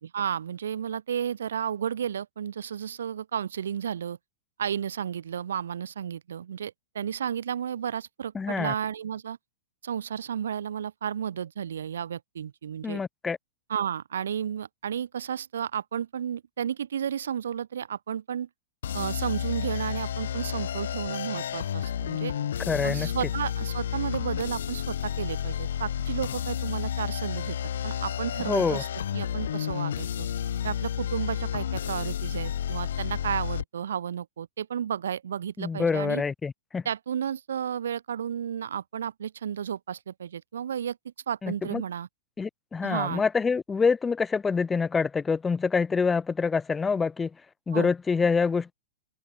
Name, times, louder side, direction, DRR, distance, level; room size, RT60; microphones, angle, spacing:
voice 1, 0.0-4.2 4.6-9.4 9.8-13.0 13.7-18.5 18.9-22.3 22.8-27.6 27.8-28.9 29.1-30.3 30.6-36.2 36.8-41.0 41.3-42.1 42.8-43.2 47.7-47.9, right 8 dB, 85° right, 3.3 m, -32 dB
voice 2, 8.3-8.7 12.8-13.4 22.7-23.1 28.4-28.8 35.6-36.8 41.4-41.8 42.4-47.3 47.7-48.7, left 5 dB, 15° left, 2.6 m, -26 dB
sound 1, 18.8-33.6, left 9 dB, 80° left, 1.2 m, -31 dB
hypercardioid pair, 125°, 0 cm